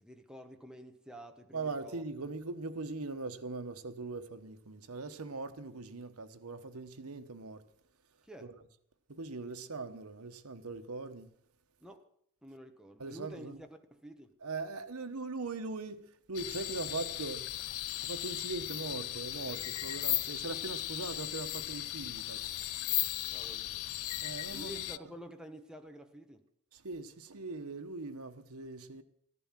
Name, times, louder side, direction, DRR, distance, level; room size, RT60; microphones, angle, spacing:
voice 1, 0.0-2.0 8.2-8.5 11.8-12.0 12.4-14.3 23.3-23.7 24.5-26.4, equal, 5° right, 1.2 m, -49 dB
voice 2, 1.5-7.6 8.4-8.5 9.1-11.3 13.0-13.6 14.4-16.0 16.3-17.5 18.0-22.4 24.2-24.8 26.7-29.0, right 3 dB, 90° right, 1.1 m, -41 dB
sound 1, 16.3-25.0, left 15 dB, 75° left, 0.5 m, -36 dB
14.0 x 11.0 x 7.5 m
head